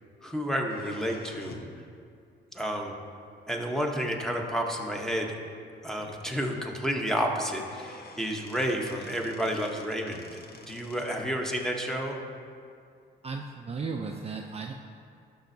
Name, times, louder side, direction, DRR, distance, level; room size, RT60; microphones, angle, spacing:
voice 1, 0.2-1.6 2.5-2.9 3.5-5.3 5.8-10.4 10.7-12.2, equal, ahead, 1 dB, 0.9 m, -30 dB
sound 1, 0.6-1.8 3.6-3.7 4.6-4.7 5.1-5.2 5.5-5.6 7.0-7.1 7.3-11.3, left 3 dB, 50° left, 0.8 m, -49 dB
voice 2, 13.2-14.7, right 4 dB, 30° right, 2 dB, 0.4 m, -35 dB
11.5 x 6.2 x 2.7 m, 2.3 s
cardioid pair, 90°, 20 cm